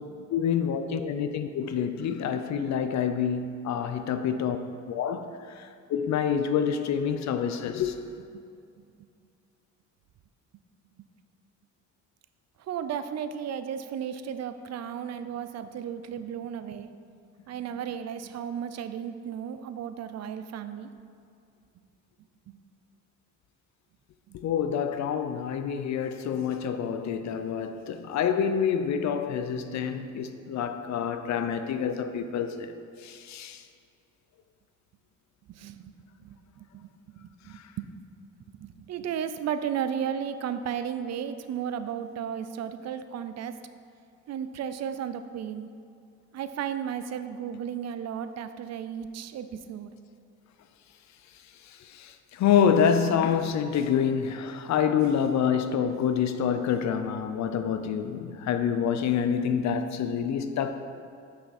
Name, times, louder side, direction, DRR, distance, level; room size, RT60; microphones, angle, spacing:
voice 1, 0.3-4.6 4.9-8.0 24.3-32.7 33.0-33.6 51.9-60.8, left 7 dB, 65° left, 0.6 m, -27 dB
voice 2, 12.7-16.9 17.5-20.9 22.5-22.6 24.3-24.4 35.5-35.9 36.2-37.9 38.6-43.5 44.3-45.7 46.3-49.9, right 8 dB, 60° right, 0.5 m, -34 dB
7.6 x 5.9 x 4.2 m
cardioid pair, 90°, 30 cm